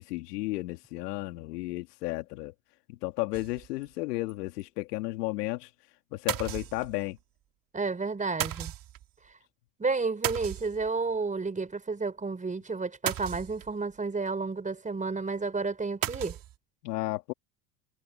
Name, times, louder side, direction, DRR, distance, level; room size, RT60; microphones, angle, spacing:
voice 1, 0.0-2.5 2.9-5.7 6.1-7.2 16.8-17.3, left 20 dB, 80° left, 2.3 m, -33 dB
sound 1, 3.3-3.9 4.3-4.4 4.6-4.7 6.3-7.1 8.4-9.0 10.2-11.1 13.1-13.8 16.0-16.5, right 13 dB, 45° right, 2.3 m, -35 dB
voice 2, 7.7-8.7 9.8-16.4, right 4 dB, 15° right, 4.7 m, -31 dB
supercardioid pair, 100°, 47 cm